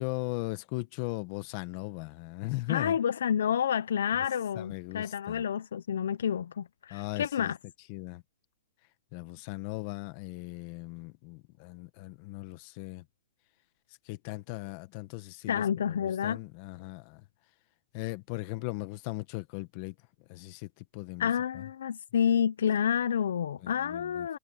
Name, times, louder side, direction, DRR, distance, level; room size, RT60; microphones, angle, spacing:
voice 1, 0.0-3.0 4.1-4.3 4.5-5.4 6.9-7.5 7.9-8.2 9.1-13.0 14.1-17.2 17.9-19.9 20.3-21.6 23.6-24.4, left 21 dB, 30° left, 1.2 m, -38 dB
voice 2, 2.7-7.6 15.5-16.4 21.2-24.4, left 8 dB, 70° left, 0.6 m, -29 dB
hypercardioid pair, 170°, 0 cm